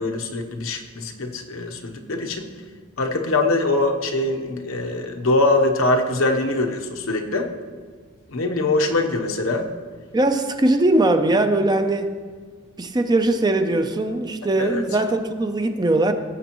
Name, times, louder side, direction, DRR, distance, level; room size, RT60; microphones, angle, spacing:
voice 1, 0.0-2.5 3.0-7.5 8.3-9.7 14.6-14.8, left 2 dB, 80° left, 3 dB, 0.9 m, -23 dB
voice 2, 10.1-12.1 12.8-16.1, right 2 dB, 20° right, 7 dB, 0.5 m, -20 dB
17.0 x 7.2 x 3.0 m, 1.5 s
head